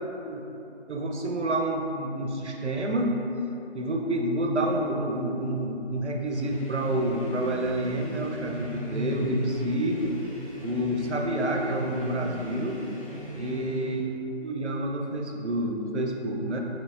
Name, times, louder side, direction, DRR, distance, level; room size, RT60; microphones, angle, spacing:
voice 1, 0.9-3.2 3.7-10.1 10.6-12.8 13.3-14.0 14.4-16.6, right 1 dB, 80° right, 1 dB, 0.6 m, -28 dB
sound 1, 6.3-14.1, equal, 30° left, 0.6 m, -36 dB
5.8 x 3.0 x 2.3 m, 3.0 s
figure-of-eight pair, 155°, 33 cm